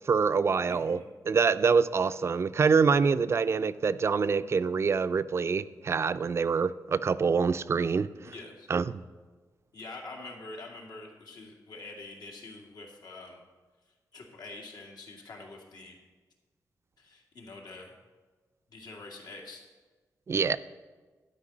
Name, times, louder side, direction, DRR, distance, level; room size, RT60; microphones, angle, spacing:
voice 1, 0.1-8.1 8.7-9.0 20.3-20.6, right 5 dB, 40° right, 14 dB, 0.4 m, -25 dB
voice 2, 0.7-1.1 8.2-8.7 9.7-13.4 14.1-16.0 17.0-17.9 18.7-19.6, left 2 dB, 90° left, 0 dB, 2.1 m, -45 dB
12.0 x 5.3 x 8.5 m, 1.3 s
wide cardioid pair, 140°, 7 cm